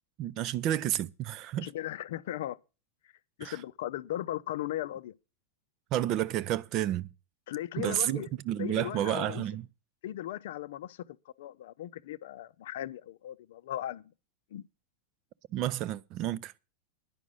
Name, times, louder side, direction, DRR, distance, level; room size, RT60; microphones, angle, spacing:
voice 1, 0.2-1.7 3.4-3.6 5.9-7.1 7.8-9.7 15.5-16.6, right 12 dB, 40° right, 0.5 m, -31 dB
voice 2, 1.6-2.6 3.4-5.1 7.5-8.3 8.6-9.5 10.0-11.0 11.4-14.0 14.5-14.6, left 13 dB, 55° left, 0.5 m, -37 dB
10.5 x 6.0 x 8.9 m
figure-of-eight pair, 90°, 0 cm